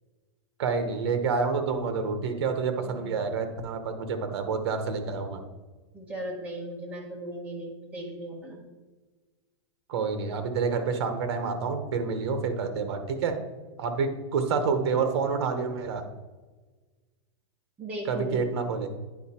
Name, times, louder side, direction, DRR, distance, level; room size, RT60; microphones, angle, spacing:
voice 1, 0.6-5.4 9.9-13.3 13.8-16.0 18.0-18.9, right 5 dB, 60° right, 7 dB, 1.1 m, -28 dB
voice 2, 2.8-3.3 5.9-8.6 17.8-18.5, right 1 dB, 10° right, -2 dB, 1.2 m, -37 dB
9.5 x 4.0 x 4.3 m, 1.3 s
supercardioid pair, 170°, 15 cm